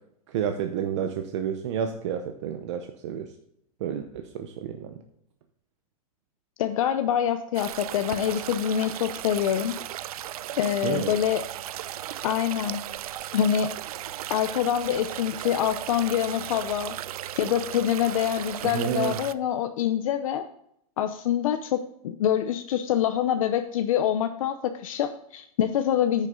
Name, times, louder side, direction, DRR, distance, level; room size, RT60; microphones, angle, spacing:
voice 1, 0.3-3.3 3.8-5.0 10.8-11.1 18.6-19.2, right 8 dB, 50° right, 6 dB, 0.8 m, -30 dB
voice 2, 6.6-9.7 10.6-11.5 12.2-12.8 13.3-13.7 14.3-17.0 17.3-20.4 21.0-24.6 24.8-26.3, left 10 dB, 60° left, 8 dB, 0.7 m, -25 dB
sound 1, 7.5-19.3, right 12 dB, 75° right, 0.5 m, -36 dB
9.9 x 6.6 x 3.8 m, 0.72 s
supercardioid pair, 165°, 19 cm